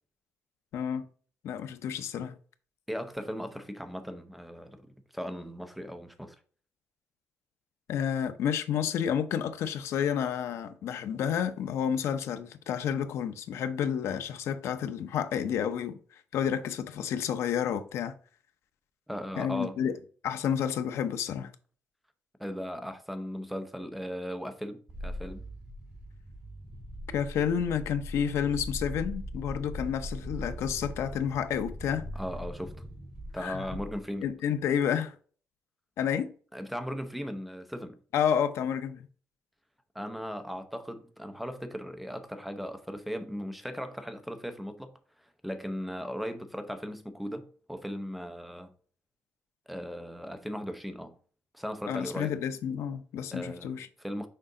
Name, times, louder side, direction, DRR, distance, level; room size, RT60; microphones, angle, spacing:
voice 1, 0.7-1.1 1.4-2.3 7.9-18.1 19.4-19.9 20.2-21.5 27.1-32.1 33.4-33.6 34.2-35.1 36.0-36.3 38.1-39.1 51.9-53.9, left 8 dB, 70° left, 0.7 m, -30 dB
voice 2, 2.9-6.4 19.1-19.8 22.4-25.4 32.1-32.7 33.3-34.2 36.5-38.0 39.9-48.7 49.7-51.2 51.5-52.3 53.3-53.7 54.0-54.3, equal, ahead, 0.7 m, -37 dB
sound 1, 24.9-34.3, equal, 20° right, 2.4 m, -40 dB
6.7 x 5.0 x 3.8 m
cardioid pair, 165°, 5 cm